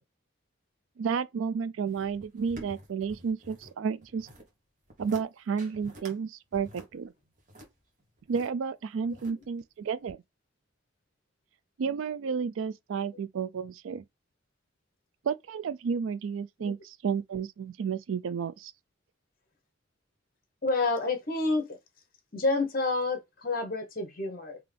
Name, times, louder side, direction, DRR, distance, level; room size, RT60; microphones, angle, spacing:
voice 1, 1.0-4.3 5.0-7.1 8.3-10.2 11.8-14.0 15.2-16.8 17.0-18.7, right 6 dB, 80° right, 0.4 m, -31 dB
sound 1, 1.9-3.7 4.0-4.5 4.9-5.2 5.6-6.2 6.5-8.5 9.0-9.6 10.1-10.2, equal, 40° right, 1.2 m, -49 dB
voice 2, 9.1-9.4 16.6-16.7 20.6-21.6 22.3-24.6, left 3 dB, 45° left, 1.1 m, -29 dB
3.7 x 2.9 x 3.3 m
head